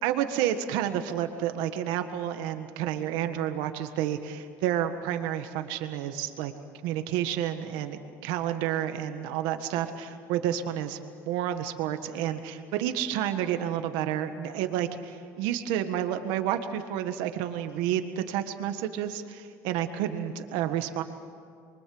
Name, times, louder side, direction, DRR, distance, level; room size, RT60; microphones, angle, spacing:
voice 1, 0.0-6.5 6.8-11.0 11.2-21.0, right 11 dB, 80° right, 8 dB, 1.6 m, -30 dB
28.5 x 24.0 x 7.9 m, 2.3 s
cardioid pair, 145°, 8 cm